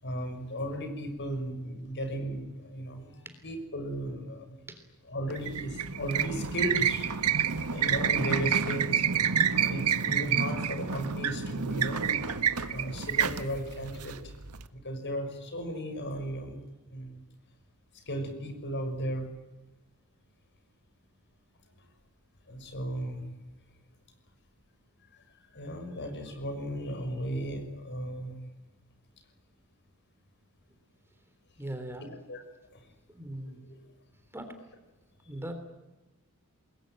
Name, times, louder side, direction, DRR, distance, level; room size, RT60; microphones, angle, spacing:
voice 1, 0.0-4.6 5.1-9.1 9.6-12.2 12.7-14.3 14.7-16.6 16.9-17.2 17.9-19.3 22.5-23.3 25.3-28.4 32.3-32.4 32.7-32.8 33.7-33.9, equal, 55° left, 7 dB, 6.1 m, -35 dB
sound 1, 5.3-14.6, right 7 dB, 90° right, 1.5 m, -28 dB
voice 2, 31.6-32.1 33.1-33.6 34.3-34.5 35.3-35.5, right 1 dB, 10° right, 7 dB, 3.5 m, -39 dB
27.5 x 21.5 x 9.1 m, 1.1 s
head